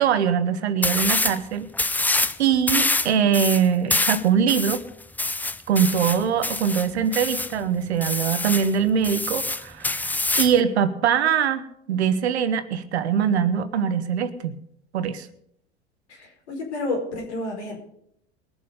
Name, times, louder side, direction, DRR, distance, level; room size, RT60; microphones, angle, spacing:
voice 1, 0.0-1.7 2.4-4.8 5.7-11.6 11.9-14.6 14.9-15.3, right 7 dB, 80° right, 11 dB, 1.3 m, -22 dB
sound 1, 0.8-1.4 1.7-2.4 2.7-7.5 8.0-8.7 9.0-10.6, left 2 dB, 5° left, 0.5 m, -25 dB
voice 2, 16.1-17.8, left 2 dB, 85° left, 0 dB, 4.9 m, -30 dB
21.5 x 7.3 x 5.3 m, 0.72 s
hypercardioid pair, 85°, 33 cm